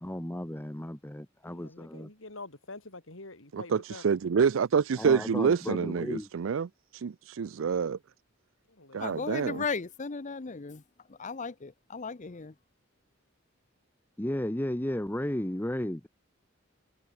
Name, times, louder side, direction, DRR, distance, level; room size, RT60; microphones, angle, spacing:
voice 1, 0.0-2.1 4.9-6.3 14.2-16.1, left 1 dB, 10° left, 0.9 m, -34 dB
voice 2, 1.5-4.0 8.7-9.0 9.4-9.5, left 2 dB, 80° left, 4.5 m, -46 dB
voice 3, 3.5-6.7 6.9-8.0 8.9-9.6, right 6 dB, 80° right, 0.4 m, -27 dB
voice 4, 9.0-10.8 11.1-12.5, left 4 dB, 40° left, 0.7 m, -36 dB
head